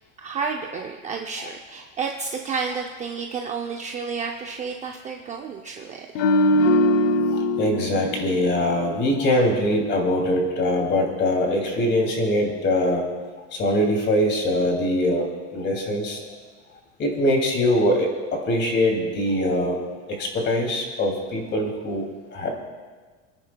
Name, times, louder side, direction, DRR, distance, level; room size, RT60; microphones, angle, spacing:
voice 1, 0.2-6.1, right 5 dB, 20° right, 2 dB, 0.5 m, -31 dB
sound 1, 6.1-9.4 9.7-10.0, left 1 dB, 85° left, 0.7 m, -22 dB
voice 2, 7.6-13.0 13.5-15.3 15.5-16.2 17.0-18.1 18.5-19.8 20.2-22.1 22.3-22.5, left 1 dB, 30° left, 1 dB, 2.6 m, -22 dB
28.5 x 9.9 x 2.2 m, 1.4 s
supercardioid pair, 150°, 39 cm